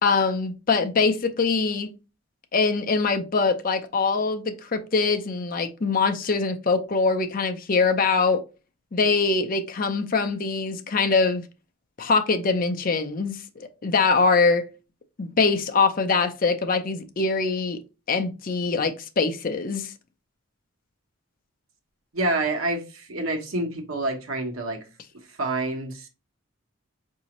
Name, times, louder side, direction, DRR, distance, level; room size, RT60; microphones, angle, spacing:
voice 1, 0.0-1.9 2.5-8.4 8.9-11.4 12.0-14.7 15.2-17.8 18.1-19.9, left 4 dB, 40° left, 0.5 m, -23 dB
voice 2, 22.1-24.8 25.4-26.1, right 2 dB, 75° right, 1.1 m, -27 dB
4.8 x 2.7 x 2.9 m
head